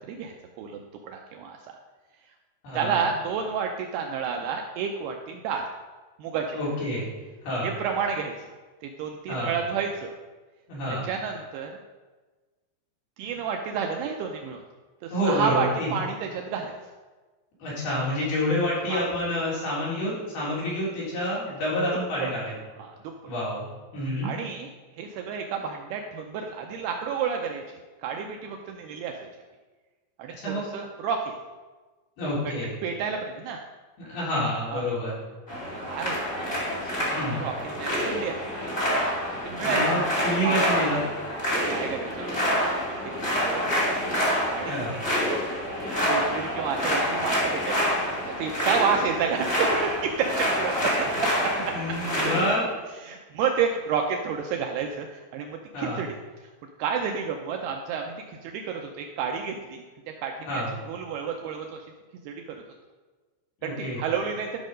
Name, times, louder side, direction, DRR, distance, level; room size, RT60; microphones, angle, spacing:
voice 1, 0.0-1.6 2.7-5.7 6.2-6.6 7.6-8.5 8.8-10.1 10.9-11.7 13.2-14.6 15.0-16.8 18.8-19.0 22.2-22.4 22.8-23.1 24.2-24.7 24.9-27.6 28.0-29.1 30.2-31.3 32.4-32.5 32.8-33.6 34.7-34.8 35.6-38.4 39.5-39.8 40.4-40.6 41.3-42.5 42.8-43.9 44.5-45.0 46.1-51.7 53.0-56.1 56.4-56.5 56.8-59.8 60.2-61.8 62.3-62.4 63.6-64.5, right 6 dB, 85° right, 3 dB, 2.3 m, -30 dB
voice 2, 2.6-3.0 6.5-7.1 7.4-7.7 9.3-9.5 10.7-11.0 15.1-15.9 17.6-22.5 23.3-23.7 23.9-24.3 30.4-30.6 32.2-32.7 34.1-35.2 37.1-37.4 39.6-41.0 44.7-44.9 51.6-52.6 55.7-56.0 60.5-60.7 63.6-64.0, left 1 dB, 60° left, -8 dB, 5.8 m, -28 dB
sound 1, 35.5-52.6, equal, 20° left, 2.3 m, -27 dB
12.5 x 6.2 x 5.1 m, 1.3 s
omnidirectional pair, 5.2 m